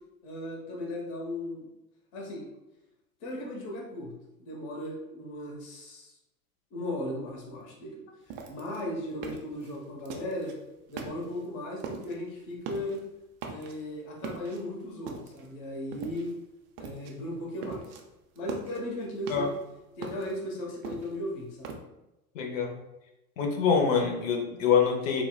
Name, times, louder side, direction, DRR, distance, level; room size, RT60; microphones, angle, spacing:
voice 1, 0.2-1.7 2.1-2.5 3.2-6.1 6.7-8.0 8.5-10.5 10.9-13.0 13.5-16.3 16.8-17.9 18.3-19.5 20.0-21.7, left 1 dB, 45° left, -3 dB, 1.2 m, -36 dB
sound 1, 8.3-10.6 10.9-11.5 11.8-12.2 12.5-13.0 13.4-13.9 14.2-15.5 15.9-16.4 16.8-17.2 17.4-18.0 18.4-19.6 20.0-21.8, right 5 dB, 40° right, 0.5 m, -41 dB
voice 2, 22.3-22.7 23.4-25.2, left 6 dB, 60° left, 2 dB, 0.9 m, -25 dB
4.0 x 2.2 x 2.2 m, 0.95 s
hypercardioid pair, 100°, 46 cm